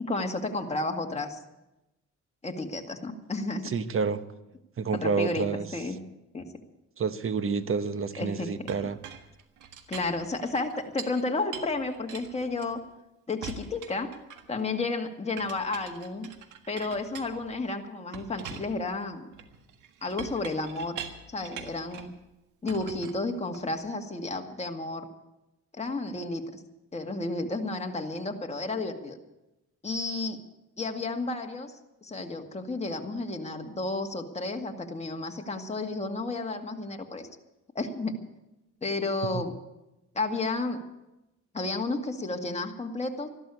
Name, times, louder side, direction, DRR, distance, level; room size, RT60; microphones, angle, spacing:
voice 1, 0.0-1.4 2.4-3.7 4.9-6.0 6.3-6.5 8.2-8.6 9.9-12.8 13.3-14.1 14.5-16.3 16.7-19.3 20.0-21.0 21.3-22.1 22.6-25.1 25.7-26.4 26.9-29.2 29.8-30.4 30.8-31.7 32.0-37.3 37.8-38.2 38.8-39.5 40.1-40.8 41.5-43.3, left 3 dB, 20° left, 3 dB, 2.0 m, -32 dB
voice 2, 3.6-4.2 4.8-5.7 7.0-9.0 39.3-39.4, right 5 dB, 45° right, 12 dB, 1.2 m, -29 dB
Chink clink, 8.7-11.2 11.5-13.0 13.4-14.6 15.4-17.7 18.1-22.2 22.7-23.8, right 7 dB, 85° right, 1.6 m, -44 dB
14.0 x 12.0 x 8.5 m, 0.97 s
cardioid pair, 90°, 30 cm